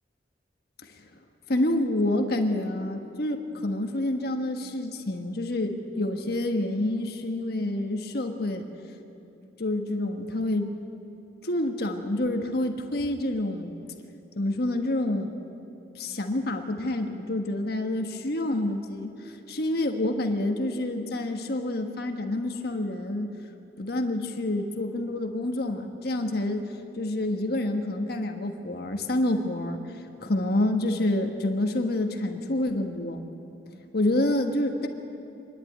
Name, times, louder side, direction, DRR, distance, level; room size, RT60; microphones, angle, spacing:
voice 1, 1.5-8.6 9.6-10.7 11.4-13.7 14.4-15.3 15.9-19.1 19.5-23.3 23.8-29.8 30.2-33.2 33.9-34.9, left 1 dB, 60° left, 5 dB, 1.4 m, -28 dB
25.5 x 11.0 x 9.2 m, 2.8 s
head